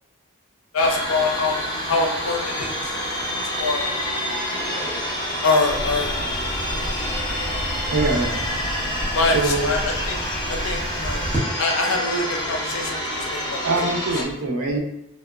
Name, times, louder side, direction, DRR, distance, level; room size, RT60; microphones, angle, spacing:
voice 1, 0.7-1.6 1.9-2.9 3.4-4.0 5.4-6.2 7.5-7.6 9.1-9.8 10.1-10.2 10.5-11.3 11.6-13.6 14.2-14.3, left 3 dB, 75° left, 2 dB, 0.5 m, -24 dB
sound 1, 0.8-14.2, equal, 20° left, 0.4 m, -28 dB
sound 2, 4.5-5.4, equal, 35° left, 0.9 m, -38 dB
sound 3, 5.7-11.4, equal, 10° right, 0.7 m, -31 dB
voice 2, 7.9-8.5 9.3-9.7 13.6-14.8, right 3 dB, 80° right, 0 dB, 0.5 m, -24 dB
2.8 x 2.0 x 2.3 m, 0.88 s
head